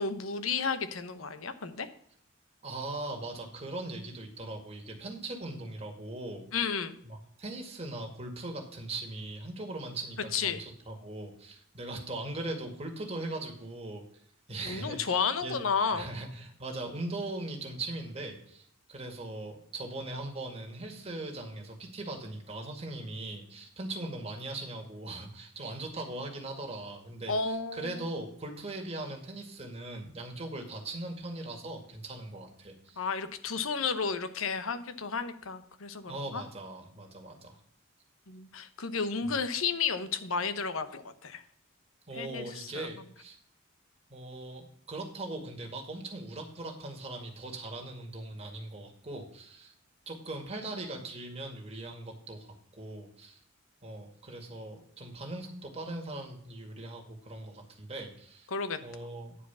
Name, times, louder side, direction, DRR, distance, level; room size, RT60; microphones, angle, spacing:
voice 1, 0.0-1.9 6.5-7.0 10.3-10.6 14.6-16.1 27.3-28.0 33.0-36.4 38.3-41.4 42.2-42.9 58.5-58.8, left 5 dB, 80° left, 12 dB, 0.9 m, -32 dB
voice 2, 2.6-6.5 7.0-14.0 14.5-15.6 15.9-33.0 36.0-37.6 39.2-39.3 42.1-43.4 44.1-49.7 50.1-53.4 53.8-58.5 58.8-59.4, right 2 dB, 30° right, 1 dB, 2.0 m, -40 dB
9.9 x 4.9 x 6.9 m, 0.63 s
head